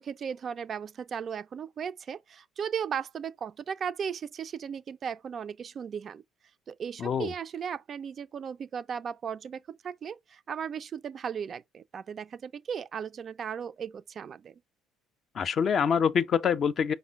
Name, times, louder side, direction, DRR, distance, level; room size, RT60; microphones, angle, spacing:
voice 1, 0.0-6.2 6.7-14.5, right 7 dB, 40° right, 0.3 m, -36 dB
voice 2, 7.0-7.3 15.3-16.9, left 7 dB, 40° left, 0.4 m, -25 dB
5.4 x 2.2 x 4.5 m
figure-of-eight pair, 55°, 0 cm